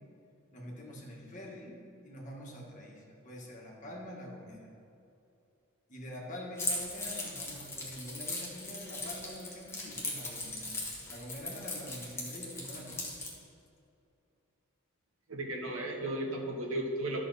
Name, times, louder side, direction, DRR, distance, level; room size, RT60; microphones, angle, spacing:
voice 1, 0.5-1.8 2.0-4.7 5.9-10.7 11.1-13.1, left 1 dB, 35° left, -2 dB, 1.7 m, -45 dB
Keys jangling, 6.6-13.3, left 2 dB, 10° left, 1.4 m, -38 dB
voice 2, 15.3-17.2, right 1 dB, 75° right, 0 dB, 1.5 m, -35 dB
11.5 x 6.2 x 4.1 m, 2.6 s
head